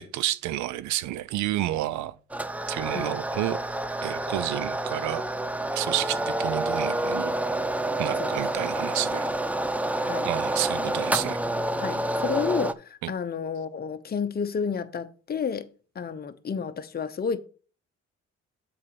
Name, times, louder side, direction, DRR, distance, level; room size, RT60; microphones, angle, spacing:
voice 1, 0.0-2.2 2.7-3.6 4.0-5.2 5.7-7.3 8.0-9.2 10.2-11.4 13.0-13.1, right 14 dB, 80° right, 0.6 m, -30 dB
sound 1, 2.3-12.7, right 1 dB, 5° right, 0.5 m, -28 dB
voice 2, 11.8-15.7 15.9-17.4, left 6 dB, 35° left, 0.8 m, -31 dB
7.6 x 4.0 x 6.0 m
supercardioid pair, 65°, 29 cm